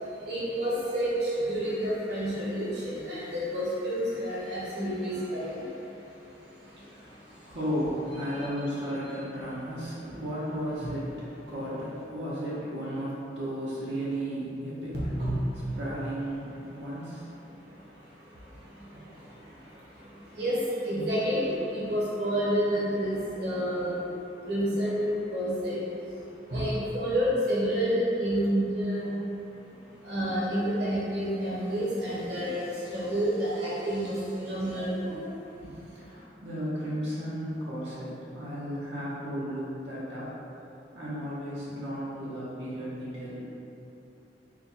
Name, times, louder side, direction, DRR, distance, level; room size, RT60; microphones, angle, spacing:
voice 1, 0.3-5.5 15.2-15.3 15.6-15.7 20.4-20.6 20.8-21.4 21.7-23.9 24.5-25.8 26.5-29.1 30.1-32.6 32.9-35.1, equal, 65° right, -8 dB, 1.0 m, -29 dB
voice 2, 6.7-15.0 15.8-17.3 20.3-20.4 35.6-40.3 40.9-43.5, equal, 90° right, -9 dB, 1.0 m, -34 dB
4.3 x 2.2 x 4.2 m, 3.0 s
head